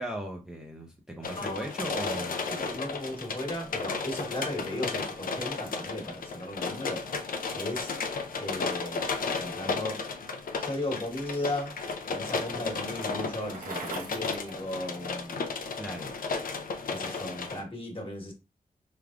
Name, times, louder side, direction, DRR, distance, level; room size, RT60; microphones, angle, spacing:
voice 1, 0.0-2.4 15.8-16.2, right 1 dB, 5° right, 0.5 m, -37 dB
sound 1, 1.2-17.6, left 4 dB, 75° left, 0.6 m, -34 dB
voice 2, 1.4-1.7 2.4-7.0 7.5-7.9 8.4-10.0 10.6-11.7 12.1-15.5 16.9-18.3, left 1 dB, 40° left, 1.3 m, -36 dB
Bicycle, 11.1-15.5, right 3 dB, 75° right, 1.2 m, -44 dB
4.8 x 3.4 x 2.4 m
wide cardioid pair, 150°, 14 cm